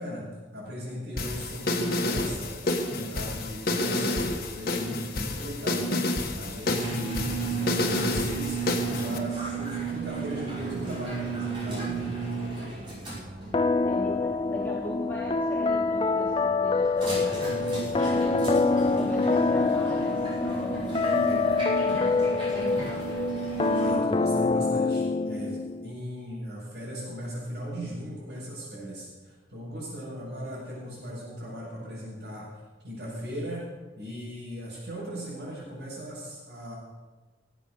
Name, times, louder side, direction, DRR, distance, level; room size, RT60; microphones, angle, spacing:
voice 1, 0.0-2.5 2.9-5.9 6.3-8.6 8.8-12.1 23.7-25.6 25.8-32.5 32.8-33.7 34.0-36.7, equal, 75° right, -10 dB, 5.7 m, -38 dB
sound 1, 1.2-9.2, left 2 dB, 55° left, 1.6 m, -29 dB
sound 2, 6.6-23.9, right 5 dB, 30° right, 5.5 m, -34 dB
sound 3, 13.5-25.9, left 3 dB, 30° left, 0.4 m, -26 dB
voice 2, 13.9-17.5 17.7-18.4 18.8-23.2, left 1 dB, 10° left, -4 dB, 1.7 m, -40 dB
18.0 x 8.2 x 6.6 m, 1.3 s
head